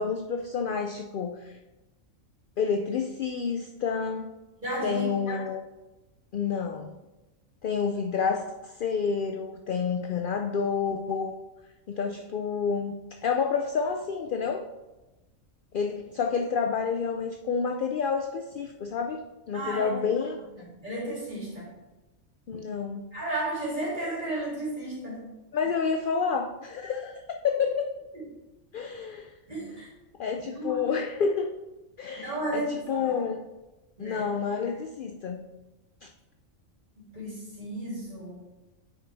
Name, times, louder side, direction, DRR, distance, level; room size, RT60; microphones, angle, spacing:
voice 1, 0.0-1.5 2.6-4.3 4.8-5.6 6.3-6.9 7.6-11.3 11.9-12.9 13.2-14.7 15.7-20.4 22.5-23.1 25.5-27.9 28.7-29.3 30.2-31.5 32.0-33.5 34.0-35.4 36.0-36.1, left 5 dB, 65° left, 5 dB, 0.5 m, -29 dB
voice 2, 4.6-5.1 19.5-19.9 20.8-21.7 23.1-25.2 28.1-28.2 29.5-29.9 30.5-30.8 32.2-33.1 34.0-34.3 37.1-38.4, right 1 dB, 35° right, -7 dB, 3.4 m, -33 dB
8.8 x 6.4 x 3.4 m, 1.1 s
omnidirectional pair, 1.4 m